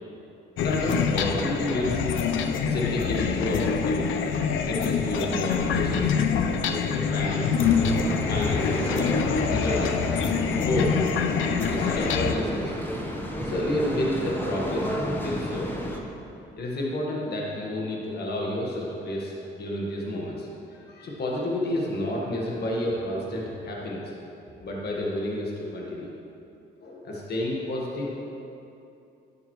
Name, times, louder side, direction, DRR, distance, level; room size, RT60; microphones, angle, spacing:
sound 1, 0.6-12.3, left 6 dB, 80° left, 0.6 m, -25 dB
voice 1, 0.6-2.0 2.7-4.4 4.7-7.6 8.3-9.1 9.4-10.9 11.7-12.8 13.4-14.9 15.2-15.7 16.6-20.5 20.9-24.0 24.6-26.1 26.8-28.1, left 1 dB, 55° left, -3 dB, 1.5 m, -30 dB
sound 2, 7.6-16.0, equal, 10° left, 1.1 m, -32 dB
11.5 x 7.0 x 3.2 m, 2.8 s
cardioid pair, 90°, 20 cm